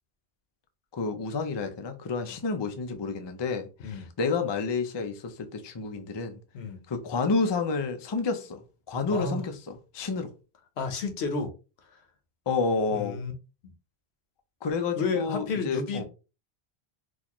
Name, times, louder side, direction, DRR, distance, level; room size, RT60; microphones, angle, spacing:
voice 1, 0.9-6.4 6.9-8.6 8.9-9.6 9.9-10.3 12.5-13.2 14.6-16.0, left 4 dB, 40° left, 0.4 m, -29 dB
voice 2, 9.1-9.4 10.8-11.5 11.9-12.0 12.9-13.3 15.0-16.0, left 4 dB, 80° left, 1.0 m, -31 dB
4.0 x 2.3 x 2.9 m
omnidirectional pair, 1.1 m